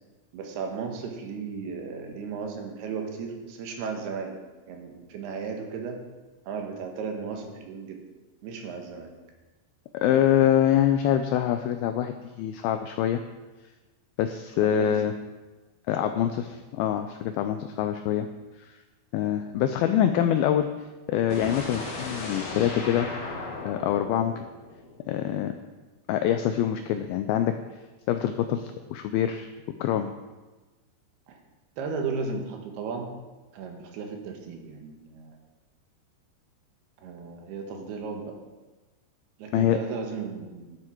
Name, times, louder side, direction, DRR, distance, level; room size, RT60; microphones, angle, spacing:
voice 1, 0.3-4.4 4.7-6.0 6.5-8.0 8.4-9.1 14.6-14.9 16.0-16.3 31.3-31.4 31.8-33.1 33.5-35.4 37.0-38.3 39.4-40.8, right 5 dB, 75° right, 3 dB, 3.2 m, -35 dB
voice 2, 9.9-13.2 14.2-15.1 15.9-16.5 16.7-18.3 18.6-18.8 19.1-20.7 21.1-23.1 23.7-24.5 25.1-25.5 26.1-27.6 28.1-29.5 29.8-30.1 39.5-39.8, left 10 dB, 85° left, 8 dB, 2.1 m, -25 dB
sound 1, 21.3-25.3, left 3 dB, 60° left, 3.8 m, -36 dB
11.5 x 9.7 x 4.5 m, 1.2 s
omnidirectional pair, 4.8 m